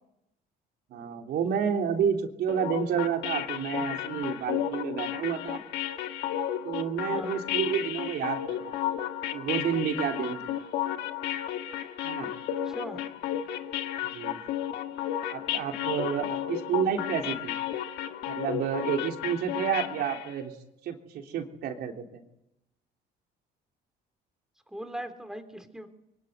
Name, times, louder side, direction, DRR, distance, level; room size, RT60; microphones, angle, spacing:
voice 1, 0.9-5.6 6.6-8.8 9.3-10.5 12.0-12.3 14.1-14.5 15.3-17.5 18.3-20.5 20.8-22.2, right 8 dB, 70° right, 3 dB, 3.4 m, -30 dB
sound 1, 2.5-20.3, left 11 dB, 85° left, 1.6 m, -33 dB
voice 2, 12.6-13.0 24.7-25.9, right 1 dB, 5° right, 7 dB, 3.3 m, -39 dB
23.5 x 22.5 x 9.3 m, 0.86 s
cardioid pair, 110°, 17 cm